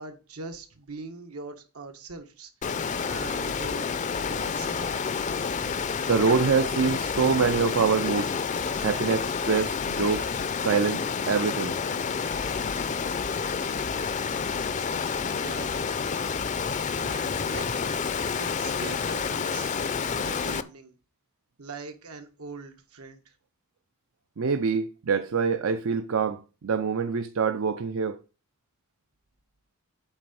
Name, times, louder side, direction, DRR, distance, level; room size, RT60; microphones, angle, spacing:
voice 1, 0.0-2.5 3.0-3.9 4.3-5.0 15.4-15.7 17.0-17.7 18.4-19.7 20.2-21.0 21.6-23.3, right 3 dB, 80° right, 1.5 m, -41 dB
Water, 2.6-20.6, left 5 dB, 35° left, 0.5 m, -29 dB
voice 2, 6.1-8.4 8.8-11.8 24.4-28.2, right 5 dB, 65° right, 0.5 m, -25 dB
8.3 x 3.8 x 6.9 m
head